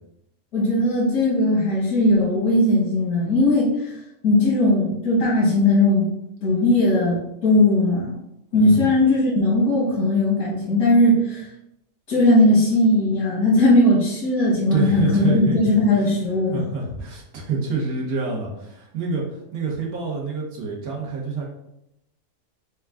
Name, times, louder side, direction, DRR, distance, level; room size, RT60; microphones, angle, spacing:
voice 1, 0.5-4.0 4.2-6.1 6.4-8.1 8.5-11.4 12.1-16.6, left 1 dB, 80° left, -9 dB, 1.6 m, -18 dB
voice 2, 8.5-8.9 14.7-16.1 16.5-21.5, right 4 dB, 85° right, -2 dB, 1.5 m, -27 dB
4.6 x 2.2 x 3.5 m, 0.83 s
omnidirectional pair, 1.5 m